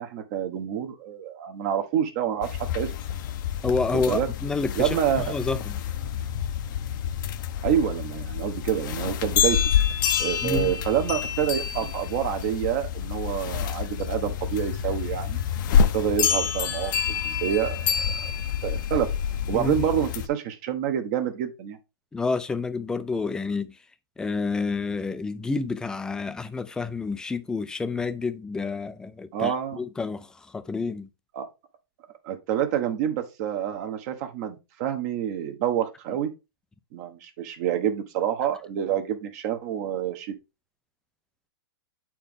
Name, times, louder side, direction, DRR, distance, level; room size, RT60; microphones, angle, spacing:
voice 1, 0.0-2.5 2.7-2.9 3.9-4.3 4.7-5.4 7.6-9.6 10.2-15.4 15.9-16.9 17.2-18.3 18.6-19.1 19.5-21.8 29.3-29.8 31.3-31.5 32.2-36.3 36.9-40.3, right 9 dB, 45° right, 1.0 m, -27 dB
sound 1, 2.4-20.3, left 8 dB, 55° left, 0.7 m, -27 dB
voice 2, 3.6-5.8 10.4-10.7 19.5-19.9 22.1-23.8 24.2-31.1, left 4 dB, 5° left, 0.4 m, -29 dB
7.6 x 4.5 x 3.6 m
hypercardioid pair, 145°, 12 cm